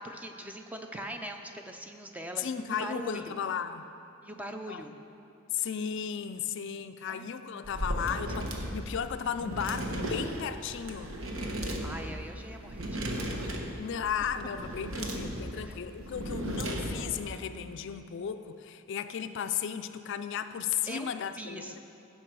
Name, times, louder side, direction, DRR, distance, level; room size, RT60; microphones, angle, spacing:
voice 1, 0.0-3.3 4.2-5.0 7.1-7.3 11.8-13.2 15.5-15.8 20.9-21.1 21.4-21.7, right 1 dB, 5° right, 4 dB, 0.5 m, -41 dB
voice 2, 2.4-3.8 4.7-4.8 5.5-11.1 13.8-21.8, left 8 dB, 55° left, 10 dB, 0.3 m, -35 dB
sound 1, 7.6-17.2, right 1 dB, 70° right, 1.1 m, -36 dB
16.5 x 5.7 x 4.7 m, 2.9 s
head